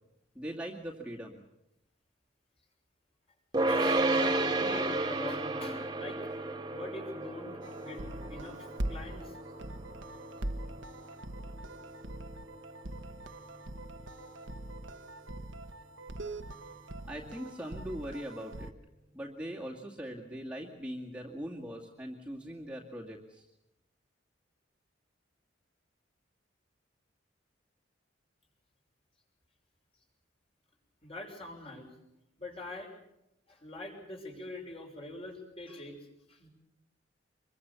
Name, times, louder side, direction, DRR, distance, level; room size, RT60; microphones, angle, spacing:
voice 1, 0.3-1.4 17.1-18.7 19.1-23.4, equal, 5° right, -3 dB, 2.3 m, -41 dB
sound 1, 3.5-14.9, right 2 dB, 20° right, 2.1 m, -34 dB
voice 2, 3.7-6.4 6.7-8.0 8.3-9.4 31.0-32.0 32.4-32.9 33.5-36.5, left 1 dB, 30° left, 2 dB, 6.1 m, -44 dB
sound 2, 7.6-18.7, right 1 dB, 75° right, 1.4 m, -42 dB
25.5 x 23.5 x 7.0 m, 0.86 s
head